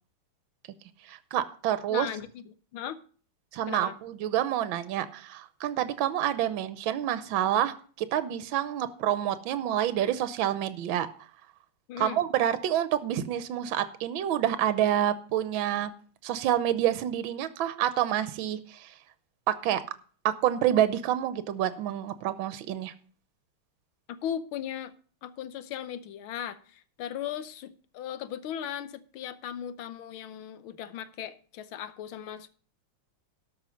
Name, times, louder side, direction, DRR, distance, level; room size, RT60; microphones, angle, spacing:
voice 1, 1.1-2.1 3.5-11.1 12.0-15.9 16.2-18.9 19.5-19.8 20.2-22.9, right 11 dB, 75° right, 1.5 m, -28 dB
voice 2, 1.9-3.0 3.7-4.0 11.9-12.2 24.1-24.9 25.2-32.5, left 9 dB, 80° left, 1.6 m, -37 dB
12.5 x 5.6 x 6.2 m
omnidirectional pair, 2.2 m